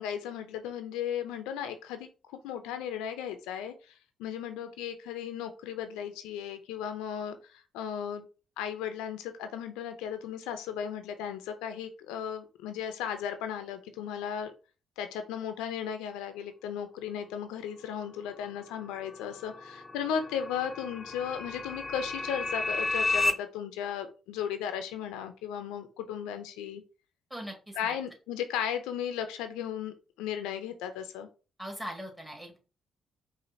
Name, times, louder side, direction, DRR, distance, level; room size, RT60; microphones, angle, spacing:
voice 1, 0.0-3.7 4.2-8.3 8.6-14.5 15.0-26.8 27.8-31.3, left 8 dB, 90° left, 8 dB, 0.4 m, -36 dB
sound 1, 19.0-23.3, left 2 dB, 25° left, 0.5 m, -32 dB
voice 2, 27.3-28.0 31.6-32.6, equal, 15° right, 1 dB, 1.8 m, -40 dB
5.0 x 2.5 x 2.7 m, 0.33 s
supercardioid pair, 55°, 0 cm